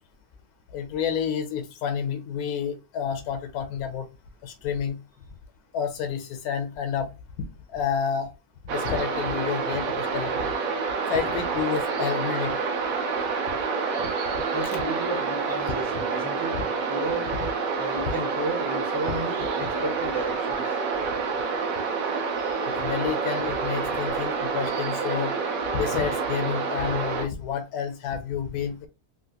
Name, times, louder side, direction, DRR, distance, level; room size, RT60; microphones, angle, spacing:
voice 1, 0.7-4.1 4.4-5.0 5.7-7.1 7.7-8.3 8.6-10.5 11.1-12.6 14.0-14.4 16.5-16.6 19.1-19.2 19.6-19.7 22.7-25.3 25.7-28.9, left 7 dB, 85° left, 1.1 m, -29 dB
sound 1, 8.7-27.3, right 5 dB, 70° right, 1.0 m, -28 dB
voice 2, 14.5-17.3 17.7-20.6, right 2 dB, 25° right, 0.5 m, -33 dB
3.1 x 2.5 x 2.8 m
omnidirectional pair, 1.6 m